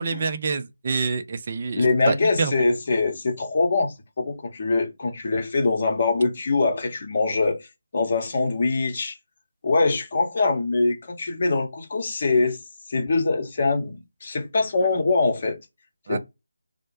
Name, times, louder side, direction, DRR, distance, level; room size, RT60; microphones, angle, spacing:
voice 1, 0.0-2.7 16.1-16.2, right 4 dB, 40° right, 0.4 m, -27 dB
voice 2, 1.7-7.7 7.9-9.2 9.6-12.6 12.9-15.6 16.1-16.2, left 3 dB, 40° left, 0.8 m, -23 dB
2.1 x 2.0 x 3.0 m
figure-of-eight pair, 160°, 0 cm